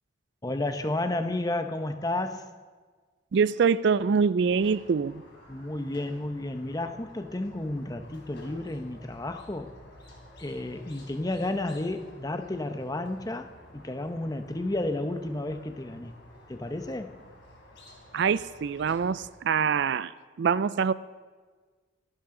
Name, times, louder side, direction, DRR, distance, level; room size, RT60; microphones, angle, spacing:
voice 1, 0.4-2.4 5.5-9.7 10.4-16.1 16.5-17.2, left 2 dB, 20° left, 7 dB, 0.8 m, -32 dB
voice 2, 3.3-5.2 18.1-20.1 20.4-20.9, right 6 dB, 60° right, 17 dB, 0.4 m, -24 dB
Squeak, 4.4-19.3, left 1 dB, 60° left, 3.6 m, -52 dB
25.5 x 11.5 x 3.8 m, 1.5 s
head